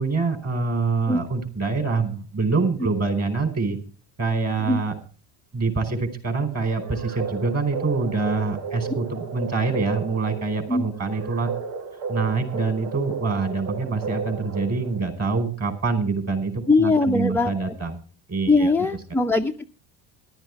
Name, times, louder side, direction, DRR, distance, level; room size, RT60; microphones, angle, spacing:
voice 1, 0.0-3.8 4.2-4.9 5.5-11.5 12.1-18.0 18.3-18.7, right 4 dB, 30° right, 8 dB, 4.8 m, -25 dB
sound 1, 6.7-15.1, right 4 dB, 80° right, 1.7 m, -33 dB
voice 2, 16.7-17.7 18.5-19.7, left 3 dB, 5° left, 3 dB, 0.8 m, -21 dB
14.0 x 12.0 x 4.7 m, 0.38 s
hypercardioid pair, 75°, 50 cm